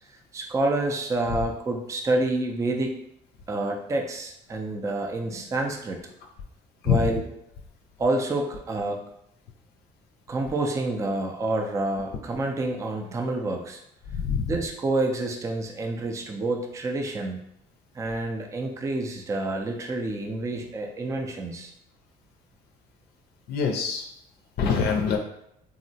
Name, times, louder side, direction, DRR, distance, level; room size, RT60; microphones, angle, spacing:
voice 1, 0.3-2.9 3.5-6.0 6.8-7.3 8.0-9.0 10.3-13.8 14.5-17.4 17.9-21.7, right 2 dB, 20° right, 2 dB, 0.4 m, -28 dB
voice 2, 14.1-14.4 23.5-24.1 24.6-25.2, left 6 dB, 75° left, 3 dB, 0.5 m, -24 dB
3.6 x 2.0 x 2.7 m, 0.76 s
cardioid pair, 110°, 17 cm